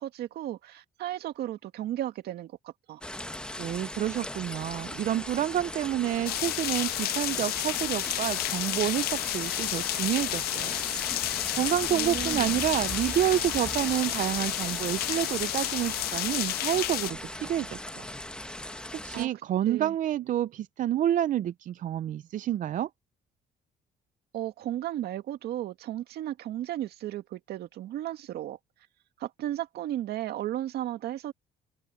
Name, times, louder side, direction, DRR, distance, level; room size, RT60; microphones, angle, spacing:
voice 1, 0.0-3.0 11.9-12.6 19.1-19.3 19.7-19.9 24.3-28.6 29.2-31.3, right 13 dB, 70° right, 2.2 m, -34 dB
sound 1, 3.0-19.3, left 1 dB, 5° left, 1.3 m, -38 dB
voice 2, 3.6-10.8 11.1-18.1 18.4-22.9, right 11 dB, 50° right, 0.5 m, -29 dB
sound 2, 6.3-17.1, left 16 dB, 65° left, 0.4 m, -31 dB
sound 3, 7.8-18.3, left 7 dB, 40° left, 6.3 m, -58 dB
cardioid pair, 110°, 17 cm